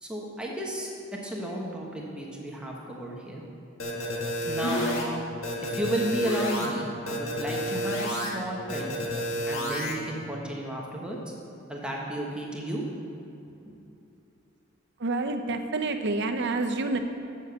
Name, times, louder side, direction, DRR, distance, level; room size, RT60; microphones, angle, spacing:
voice 1, 0.0-3.4 4.4-4.9 5.6-8.9 9.4-11.3 11.7-12.8, right 1 dB, 5° right, -3 dB, 1.1 m, -33 dB
sound 1, 3.8-5.0 5.4-6.7 7.1-8.3 8.7-9.9, equal, 75° left, 1.8 m, -30 dB
voice 2, 15.0-17.0, right 3 dB, 60° right, 6 dB, 0.7 m, -28 dB
8.5 x 7.1 x 7.0 m, 2.8 s
head